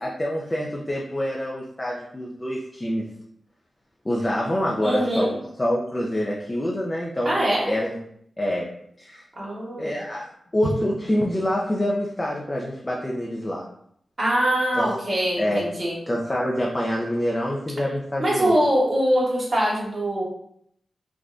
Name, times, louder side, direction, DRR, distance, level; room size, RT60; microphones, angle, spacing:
voice 1, 0.0-3.0 4.0-5.3 5.6-7.4 7.7-8.0 8.4-8.7 9.0-9.2 9.8-10.3 10.5-13.7 14.8-14.9 15.4-15.7 16.1-18.6, equal, 25° left, -3 dB, 0.5 m, -26 dB
voice 2, 4.8-5.3 7.2-7.7 9.4-10.0 14.2-16.0 18.2-20.2, equal, 50° right, -5 dB, 1.2 m, -23 dB
3.4 x 2.1 x 2.5 m, 0.70 s
cardioid pair, 60°, 0 cm